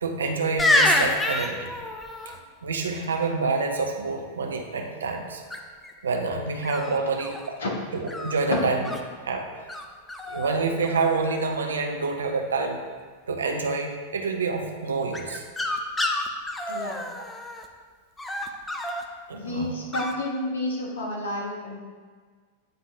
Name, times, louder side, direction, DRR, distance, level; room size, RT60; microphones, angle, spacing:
voice 1, 0.0-1.7 2.3-2.4 2.6-5.4 6.0-7.3 8.0-8.8 9.2-9.5 10.3-12.8 13.3-15.4 19.3-19.7, right 4 dB, 70° right, 3 dB, 0.7 m, -27 dB
sound 1, 0.6-2.3 5.5-5.9 6.6-7.5 8.1-9.0 9.7-9.8 10.1-10.6 10.8-11.4 15.1-17.6 18.2-19.0 19.9-20.1, left 2 dB, 10° left, 0.6 m, -27 dB
voice 2, 16.7-17.1 19.3-21.8, left 1 dB, 65° left, -2 dB, 1.4 m, -30 dB
9.1 x 3.6 x 3.5 m, 1.6 s
figure-of-eight pair, 90°, 0 cm